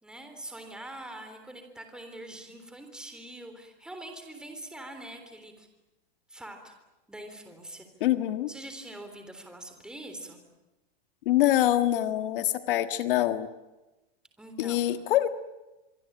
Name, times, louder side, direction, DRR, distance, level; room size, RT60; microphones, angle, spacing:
voice 1, 0.0-5.7 6.3-6.7 7.1-7.9 8.5-10.4 14.4-14.9, right 1 dB, 5° right, 6 dB, 3.5 m, -44 dB
voice 2, 8.0-8.5 11.2-13.5 14.6-15.3, left 13 dB, 60° left, 9 dB, 1.7 m, -25 dB
25.0 x 24.5 x 8.8 m, 1.0 s
supercardioid pair, 160°, 30 cm